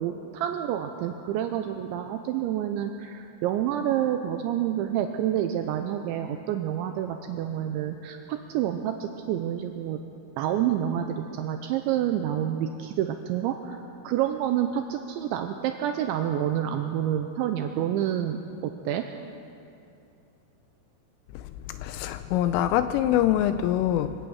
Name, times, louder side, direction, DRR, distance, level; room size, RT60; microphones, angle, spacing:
voice 1, 0.0-10.0 10.4-19.0, right 10 dB, 85° right, 6 dB, 2.7 m, -28 dB
voice 2, 21.8-24.2, left 11 dB, 85° left, 11 dB, 3.1 m, -24 dB
25.5 x 17.0 x 6.3 m, 2.7 s
omnidirectional pair, 5.9 m